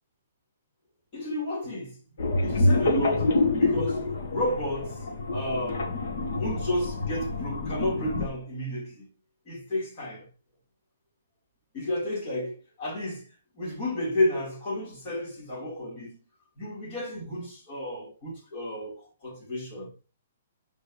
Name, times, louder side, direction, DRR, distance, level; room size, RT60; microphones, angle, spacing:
voice 1, 1.1-2.0 2.4-6.0 6.4-9.1 9.5-10.3 11.7-13.3 13.5-16.2 16.6-19.9, left 1 dB, 35° left, 4.5 m, -32 dB
sound 1, 2.2-8.3, left 2 dB, 65° left, 2.7 m, -27 dB
7.6 x 5.5 x 3.3 m
hypercardioid pair, 160°, 0 cm